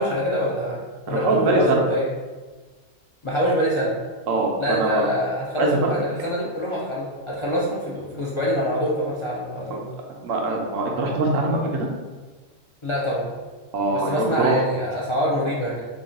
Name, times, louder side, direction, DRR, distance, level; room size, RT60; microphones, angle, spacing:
voice 1, 0.0-2.1 3.2-3.9 4.6-9.8 12.8-13.3 13.9-15.8, equal, 50° left, -5 dB, 0.3 m, -25 dB
voice 2, 1.1-1.8 4.3-5.1 5.6-5.9 9.7-9.8 10.2-11.9 13.7-14.5, right 3 dB, 90° right, 0 dB, 1.1 m, -22 dB
3.6 x 2.3 x 3.9 m, 1.3 s
omnidirectional pair, 1.3 m